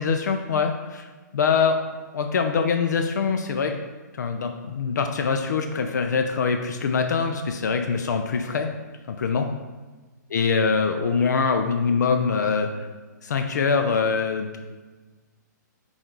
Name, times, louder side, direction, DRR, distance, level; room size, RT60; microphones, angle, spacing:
voice 1, 0.0-1.8 2.1-3.7 4.1-8.7 9.2-9.5 10.3-12.7 13.2-14.6, left 5 dB, 65° left, 5 dB, 0.6 m, -23 dB
7.7 x 4.0 x 4.6 m, 1.3 s
hypercardioid pair, 135°, 10 cm